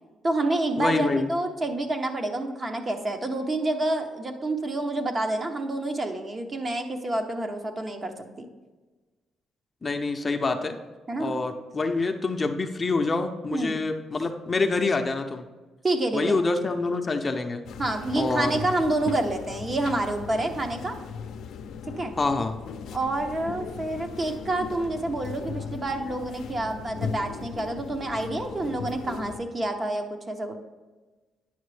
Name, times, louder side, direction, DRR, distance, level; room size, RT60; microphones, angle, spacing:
voice 1, 0.2-8.5 11.1-11.3 13.5-13.8 15.8-16.4 17.8-20.9 22.0-22.1 22.9-30.6, right 2 dB, 35° right, 5 dB, 0.9 m, -28 dB
voice 2, 0.8-1.3 9.8-10.8 11.2-15.4 16.1-17.6 18.2-18.5 22.2-22.6, left 3 dB, 30° left, 6 dB, 0.6 m, -26 dB
sound 1, 17.7-29.4, left 6 dB, 75° left, 0.5 m, -38 dB
9.4 x 6.0 x 3.3 m, 1.3 s
cardioid pair, 90°, 0 cm